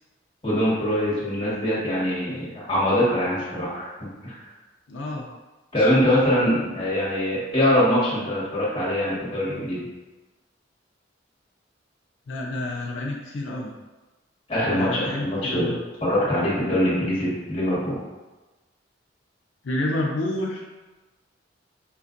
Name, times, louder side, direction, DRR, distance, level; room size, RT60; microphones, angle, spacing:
voice 1, 0.4-3.8 4.2-4.3 5.7-9.8 14.5-15.7 16.0-18.0, left 1 dB, 30° left, -8 dB, 1.5 m, -23 dB
voice 2, 4.9-5.3 12.3-13.7 14.6-15.8 19.6-20.6, left 1 dB, 85° left, -1 dB, 0.5 m, -29 dB
5.5 x 2.5 x 2.5 m, 1.2 s
head